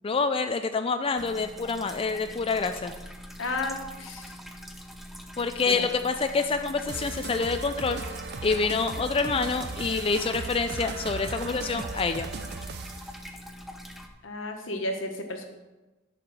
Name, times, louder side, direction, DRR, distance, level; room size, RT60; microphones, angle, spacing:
voice 1, 0.0-2.9 5.4-8.0 8.4-12.3, left 4 dB, 30° left, 7 dB, 0.4 m, -27 dB
sound 1, 1.2-14.1, equal, ahead, 0.7 m, -44 dB
voice 2, 3.4-4.3 5.6-5.9 14.2-15.5, left 2 dB, 80° left, 4 dB, 1.3 m, -33 dB
sound 2, 6.9-13.2, right 4 dB, 60° right, 0.7 m, -37 dB
10.5 x 5.0 x 6.6 m, 1.1 s
head